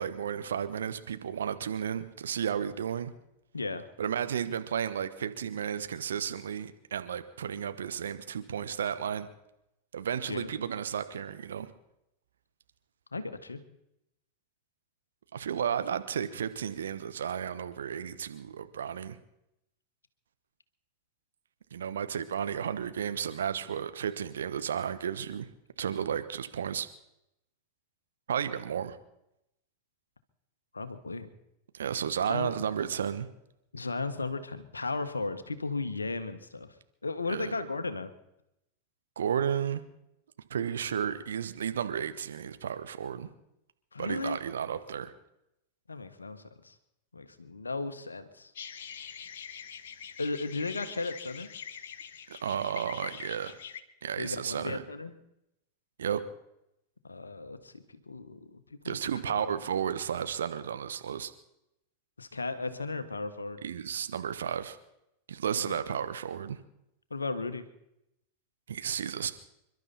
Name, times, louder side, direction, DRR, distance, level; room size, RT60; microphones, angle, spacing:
voice 1, 0.0-3.1 4.0-9.3 9.9-11.7 15.3-19.2 21.7-25.5 25.8-26.9 28.3-29.0 31.7-33.3 37.3-37.5 39.2-39.8 40.5-43.3 44.0-45.1 52.3-53.6 54.0-54.8 56.0-56.2 58.8-61.3 63.6-64.8 65.3-66.6 68.7-69.3, right 8 dB, 65° right, 10 dB, 1.1 m, -33 dB
voice 2, 3.5-3.9 10.3-10.5 13.1-13.6 30.7-31.3 32.3-32.5 33.7-36.7 37.0-38.1 43.9-44.4 45.9-46.7 47.1-48.5 50.2-51.5 54.2-55.1 57.0-57.7 58.1-59.0 59.2-59.6 62.2-63.6 65.5-65.8 67.1-67.6, left 3 dB, 80° left, 11 dB, 1.4 m, -35 dB
sound 1, 48.5-53.8, left 8 dB, 60° left, 1.1 m, -44 dB
28.0 x 12.0 x 4.3 m, 0.83 s
figure-of-eight pair, 90°, 0 cm